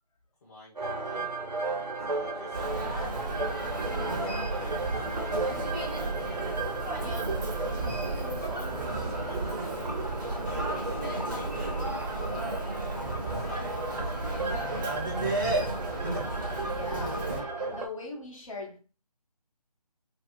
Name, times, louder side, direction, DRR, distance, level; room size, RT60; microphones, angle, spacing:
voice 1, 0.4-1.3 1.9-3.3 3.9-5.4 6.0-7.1 8.0-10.0 10.6-12.3 13.2-15.0, left 2 dB, 25° left, 0.8 m, -50 dB
sound 1, 0.8-17.9, right 2 dB, 90° right, 1.0 m, -35 dB
Human voice, 2.5-17.4, right 2 dB, 30° right, 0.8 m, -33 dB
voice 2, 16.6-18.8, left 3 dB, 55° left, 1.0 m, -40 dB
2.8 x 2.5 x 2.3 m
figure-of-eight pair, 160°, 20 cm